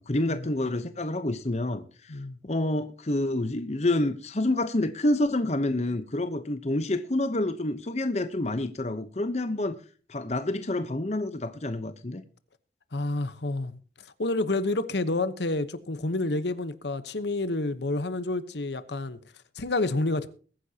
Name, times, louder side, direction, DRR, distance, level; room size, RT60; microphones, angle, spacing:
voice 1, 0.0-2.1 2.4-9.8 10.1-12.2, left 1 dB, 40° left, 0.9 m, -28 dB
voice 2, 12.9-13.8 14.2-19.2 19.6-20.3, left 2 dB, 75° left, 1.0 m, -29 dB
21.5 x 10.0 x 2.9 m
head